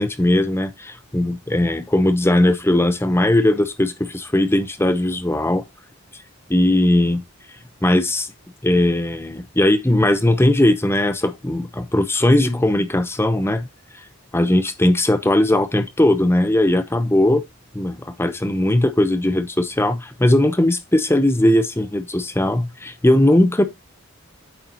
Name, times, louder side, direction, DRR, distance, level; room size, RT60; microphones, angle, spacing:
voice 1, 0.0-5.6 6.5-7.2 7.8-8.3 8.6-13.7 14.3-17.4 17.7-23.6, left 1 dB, 10° left, 0.7 m, -18 dB
8.8 x 6.6 x 2.8 m
head